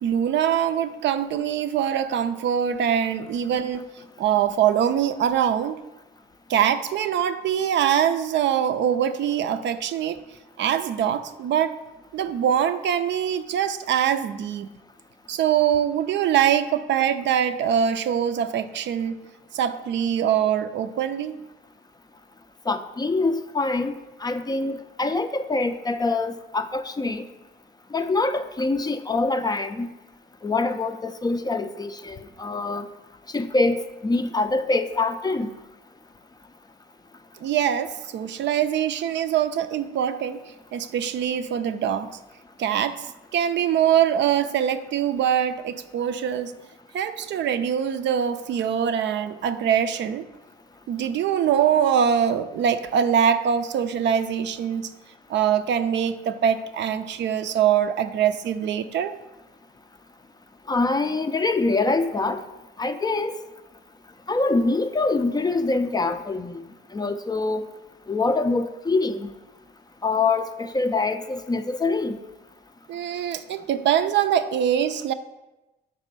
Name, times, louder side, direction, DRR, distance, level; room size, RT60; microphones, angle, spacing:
voice 1, 0.0-3.9 4.2-5.8 6.5-10.2 10.6-11.7 12.1-14.7 15.3-19.2 19.5-21.3 37.4-40.4 40.7-42.1 42.6-43.1 43.3-46.5 46.9-50.3 50.9-54.9 55.3-59.2 72.9-75.1, right 9 dB, 65° right, 10 dB, 0.4 m, -23 dB
voice 2, 22.7-23.9 24.2-27.3 27.9-29.9 30.4-32.9 33.3-35.5 60.7-62.4 62.8-63.3 64.3-66.6 66.9-67.7 68.1-69.3 70.0-72.2, left 3 dB, 20° left, 9 dB, 0.4 m, -24 dB
5.2 x 4.1 x 5.2 m, 1.0 s
cardioid pair, 90°, 20 cm